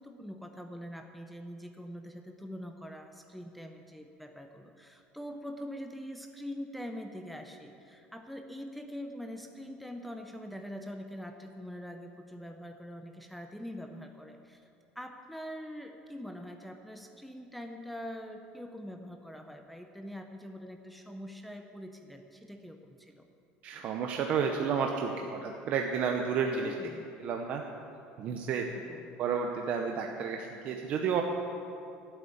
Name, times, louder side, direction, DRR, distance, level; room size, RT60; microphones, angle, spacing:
voice 1, 0.0-14.6 15.0-23.3 26.4-27.0 28.7-29.1, equal, ahead, 5 dB, 0.5 m, -44 dB
voice 2, 23.6-26.7 27.2-27.6 28.2-28.7 29.2-31.2, right 6 dB, 40° right, 2 dB, 0.7 m, -31 dB
12.0 x 8.1 x 8.6 m, 2.6 s
cardioid pair, 180°, 4 cm